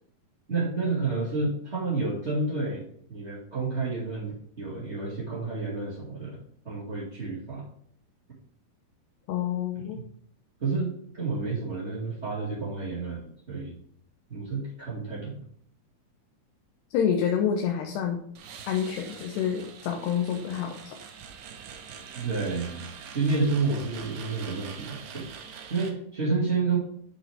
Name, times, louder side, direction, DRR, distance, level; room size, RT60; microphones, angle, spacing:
voice 1, 0.5-6.4 6.6-7.6 10.6-13.7 14.3-15.4 22.1-22.9 23.1-25.2 25.7-26.8, right 3 dB, 30° right, -9 dB, 1.2 m, -30 dB
voice 2, 9.3-10.0 16.9-18.2 18.6-21.0, left 8 dB, 75° left, 2 dB, 2.9 m, -28 dB
sound 1, 18.4-25.9, right 7 dB, 70° right, 2.0 m, -44 dB
8.7 x 6.3 x 3.4 m, 0.66 s
omnidirectional pair, 5.1 m